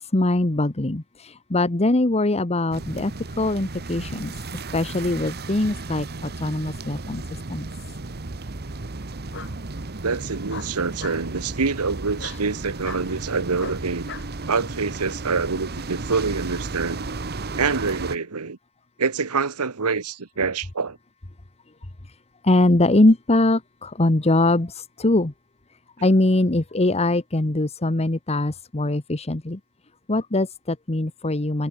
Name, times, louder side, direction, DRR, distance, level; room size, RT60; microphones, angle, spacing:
voice 1, 0.0-4.4 4.7-7.2 7.5-7.7 12.3-12.4 22.0-22.2 22.4-25.3 26.0-29.6 30.1-31.7, left 2 dB, 30° left, 1.1 m, -22 dB
sound 1, 2.7-18.2, right 3 dB, 45° right, 1.2 m, -34 dB
Bark, 9.3-9.5 10.5-11.2 12.2-12.4 12.8-13.1 13.6-14.3, left 6 dB, 55° left, 3.6 m, -39 dB
voice 2, 10.0-14.1 14.5-17.0 17.6-18.6 19.0-21.0, right 4 dB, 90° right, 1.2 m, -26 dB
head